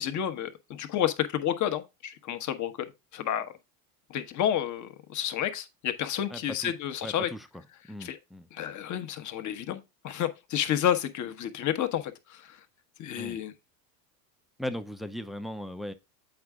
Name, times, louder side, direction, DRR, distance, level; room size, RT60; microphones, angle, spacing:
voice 1, 0.0-3.5 4.1-7.3 8.0-8.2 8.5-12.6 13.0-13.5, left 10 dB, 40° left, 1.1 m, -30 dB
voice 2, 6.3-6.7 7.0-7.5 7.9-8.5 13.1-13.4 14.6-15.9, left 1 dB, ahead, 0.5 m, -37 dB
8.0 x 4.7 x 3.6 m
supercardioid pair, 105°, 47 cm